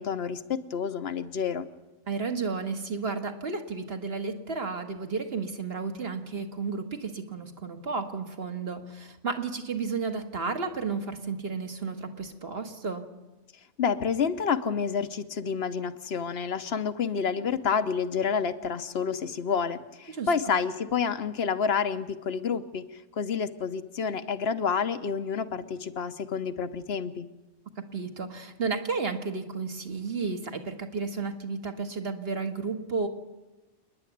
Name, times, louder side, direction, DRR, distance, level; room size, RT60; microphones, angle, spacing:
voice 1, 0.0-1.7 13.8-22.8 23.2-27.3, left 6 dB, 60° left, 12 dB, 1.1 m, -29 dB
voice 2, 2.1-13.1 20.1-20.5 27.9-33.1, right 4 dB, 55° right, 6 dB, 1.7 m, -32 dB
28.0 x 10.5 x 9.3 m, 1.1 s
omnidirectional pair, 1.3 m